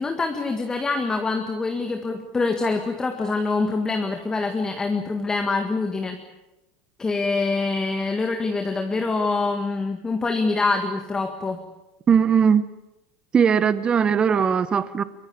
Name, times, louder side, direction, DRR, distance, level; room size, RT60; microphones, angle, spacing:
voice 1, 0.0-6.2 7.0-11.6, left 3 dB, 15° left, 5 dB, 1.8 m, -25 dB
voice 2, 12.1-12.6 13.3-15.0, right 7 dB, 20° right, 14 dB, 0.9 m, -19 dB
23.5 x 21.5 x 8.7 m, 0.95 s
supercardioid pair, 145°, 5 cm